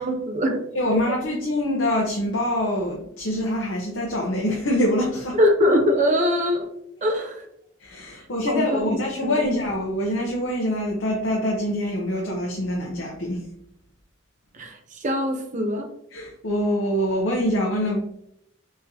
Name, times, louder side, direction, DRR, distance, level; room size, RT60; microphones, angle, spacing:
voice 1, 0.0-0.6 0.9-1.0 5.4-6.7 7.0-7.4 8.5-8.8 9.2-9.6 14.5-15.9, left 1 dB, 35° right, 3 dB, 0.7 m, -22 dB
voice 2, 0.7-5.4 7.8-13.4 16.1-18.0, left 1 dB, 65° left, -1 dB, 0.8 m, -25 dB
4.2 x 3.8 x 2.8 m, 0.74 s
head